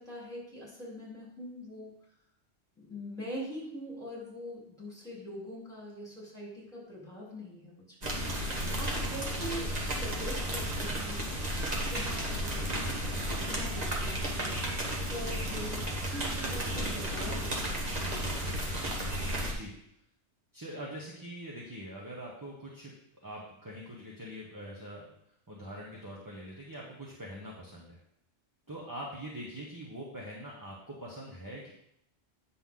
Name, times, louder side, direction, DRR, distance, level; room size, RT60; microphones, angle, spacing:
voice 1, 0.0-1.9 2.8-11.3 11.7-18.3, equal, 5° left, -6 dB, 3.5 m, -43 dB
sound 1, 8.0-19.5, right 1 dB, 35° right, 1.3 m, -33 dB
voice 2, 19.4-19.7 20.5-22.9 23.2-25.1 25.5-28.0 28.7-31.7, equal, 20° right, -3 dB, 1.2 m, -43 dB
9.1 x 6.2 x 3.9 m, 0.73 s
omnidirectional pair, 1.2 m